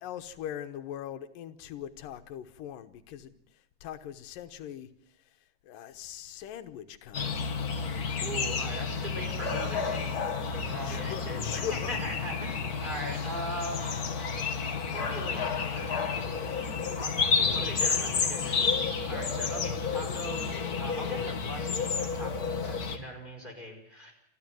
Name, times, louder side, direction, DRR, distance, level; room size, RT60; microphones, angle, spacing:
voice 1, 0.0-3.4 3.8-4.9 5.6-7.5 10.8-12.0, left 10 dB, 85° left, 10 dB, 2.7 m, -41 dB
sound 1, 7.1-23.0, left 5 dB, 40° left, 1.3 m, -31 dB
voice 2, 8.2-14.1 14.9-16.0 17.0-24.1, equal, 15° right, 2 dB, 5.2 m, -40 dB
28.0 x 12.5 x 7.7 m, 0.79 s
omnidirectional pair, 3.8 m